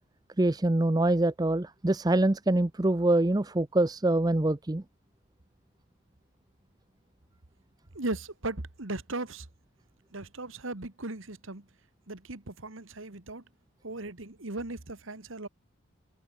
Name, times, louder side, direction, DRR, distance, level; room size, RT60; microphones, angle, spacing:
voice 1, 0.4-4.8, right 2 dB, 20° right, 0.5 m, -25 dB
voice 2, 8.0-9.5 10.1-11.6 12.1-13.4 13.8-15.5, right 2 dB, 65° right, 1.9 m, -37 dB
head